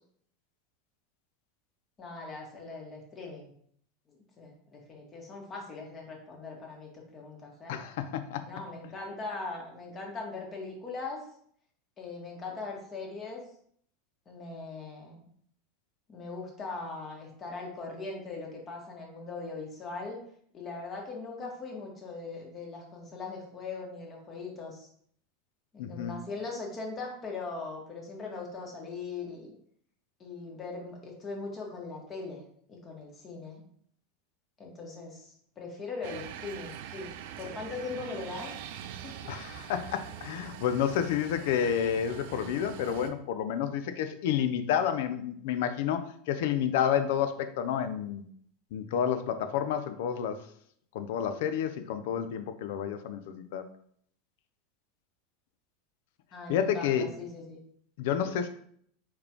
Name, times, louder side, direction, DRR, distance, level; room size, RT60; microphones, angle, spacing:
voice 1, 2.0-3.5 4.1-7.8 8.4-11.2 12.0-13.4 14.2-15.2 16.1-20.2 20.5-24.9 25.7-29.5 30.2-32.4 32.7-33.6 34.6-37.1 37.4-39.2 56.3-57.6, left 3 dB, 30° left, 0 dB, 1.6 m, -40 dB
voice 2, 7.7-8.5 25.8-26.1 39.3-48.3 48.7-50.4 50.9-53.7 56.5-57.1 58.0-58.5, left 9 dB, 65° left, 10 dB, 0.5 m, -30 dB
sound 1, 36.0-43.1, right 9 dB, 60° right, 0.4 m, -43 dB
4.7 x 3.7 x 3.0 m, 0.62 s
hypercardioid pair, 85°, 0 cm